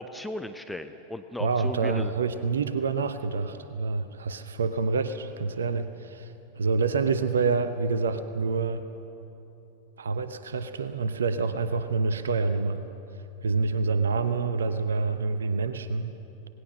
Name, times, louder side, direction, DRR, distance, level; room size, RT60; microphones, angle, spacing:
voice 1, 0.0-2.1, left 1 dB, 5° left, 8 dB, 0.8 m, -36 dB
voice 2, 1.4-8.9 10.0-12.8 13.4-16.1, right 4 dB, 70° right, 11 dB, 0.9 m, -27 dB
26.5 x 19.5 x 6.4 m, 3.0 s
figure-of-eight pair, 90°, 0 cm